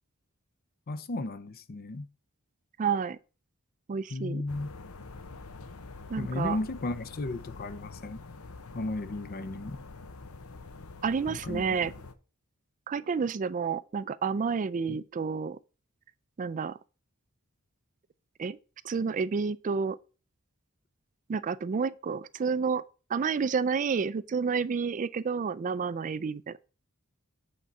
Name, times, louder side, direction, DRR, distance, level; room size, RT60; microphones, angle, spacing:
voice 1, 0.9-2.1 4.1-4.7 6.2-8.2 8.7-9.8 11.3-11.6 14.9-15.0, left 2 dB, 45° left, 0.6 m, -34 dB
voice 2, 2.8-3.2 3.9-4.4 6.1-6.6 11.0-11.9 12.9-15.6 16.4-16.8 18.4-18.6 18.8-20.0 21.3-22.8 23.1-26.6, right 5 dB, 35° right, 0.3 m, -30 dB
sound 1, 4.5-12.1, left 3 dB, 85° left, 0.9 m, -46 dB
8.6 x 3.9 x 5.3 m
head